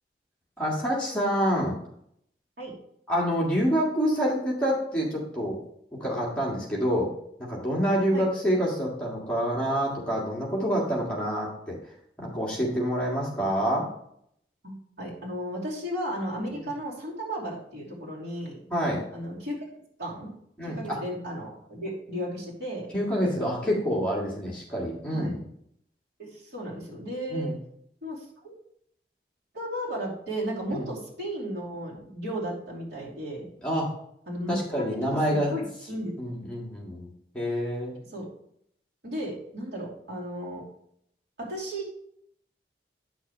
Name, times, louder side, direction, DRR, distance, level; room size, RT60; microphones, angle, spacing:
voice 1, 0.6-1.8 3.1-5.6 6.0-7.1 7.4-11.8 12.2-13.9 16.5-16.6 18.7-19.0 20.6-21.0 22.9-25.4 27.3-27.6 30.7-30.9 33.6-33.9 34.5-35.5 36.2-37.1 37.3-37.9, equal, 5° left, -5 dB, 1.9 m, -27 dB
voice 2, 14.6-18.6 19.1-19.6 20.0-20.3 20.7-22.9 25.1-25.4 26.2-27.5 28.0-28.5 29.5-33.5 34.3-34.6 35.3-36.1 38.1-38.3 39.0-40.6 41.4-41.9, equal, 80° right, -5 dB, 2.8 m, -34 dB
9.1 x 6.2 x 3.1 m, 0.70 s
head